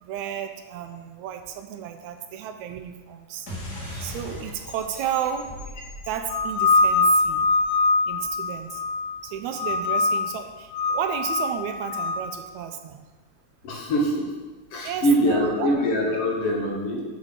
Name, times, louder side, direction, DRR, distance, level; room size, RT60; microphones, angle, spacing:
voice 1, 0.0-3.5 4.0-5.5 6.0-7.5 8.1-8.8 9.2-13.0 14.8-15.7, right 9 dB, 80° right, 7 dB, 1.7 m, -32 dB
sound 1, 3.5-8.4, left 1 dB, 30° left, 2.1 m, -39 dB
sound 2, 6.3-9.2 9.6-10.3 10.7-12.3, left 3 dB, 90° left, 1.5 m, -23 dB
voice 2, 13.6-14.3 14.7-17.0, equal, 70° left, -1 dB, 1.5 m, -23 dB
7.3 x 4.2 x 6.6 m, 1.2 s
omnidirectional pair, 3.6 m